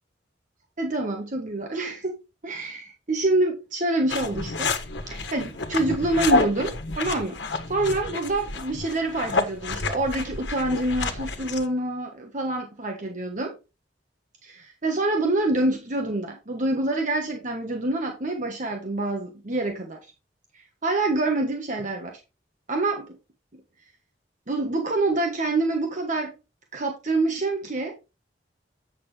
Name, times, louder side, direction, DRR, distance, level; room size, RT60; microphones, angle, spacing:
voice 1, 0.8-2.2 2.4-4.7 5.1-7.4 7.7-13.6 14.4-20.0 20.5-22.2 22.7-23.2 23.5-23.6 24.5-26.3 26.7-28.0, right 2 dB, 45° right, 1.3 m, -26 dB
sound 1, 4.1-11.7, left 3 dB, 80° left, 1.3 m, -29 dB
8.4 x 6.8 x 3.4 m
head